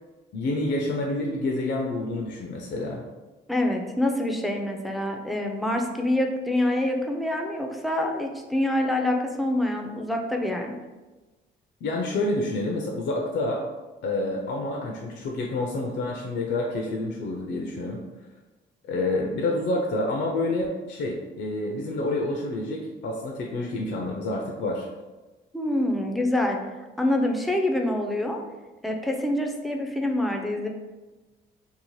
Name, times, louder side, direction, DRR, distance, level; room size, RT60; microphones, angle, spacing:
voice 1, 0.3-3.0 11.8-13.6 14.0-18.0 18.9-24.9, left 2 dB, 65° left, 0 dB, 0.5 m, -28 dB
voice 2, 3.5-10.7 25.5-26.6 27.0-28.4 28.8-30.7, left 1 dB, ahead, 2 dB, 0.4 m, -26 dB
2.7 x 2.1 x 3.0 m, 1.2 s
cardioid pair, 90°, 20 cm